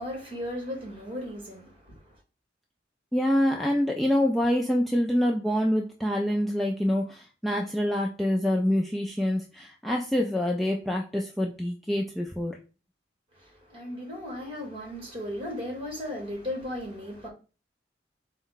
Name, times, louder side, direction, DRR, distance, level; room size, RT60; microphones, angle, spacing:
voice 1, 0.0-2.1 13.3-17.3, left 1 dB, 30° right, 1.4 m, -36 dB
voice 2, 3.1-12.6, equal, ahead, 0.3 m, -26 dB
4.3 x 2.1 x 3.8 m
head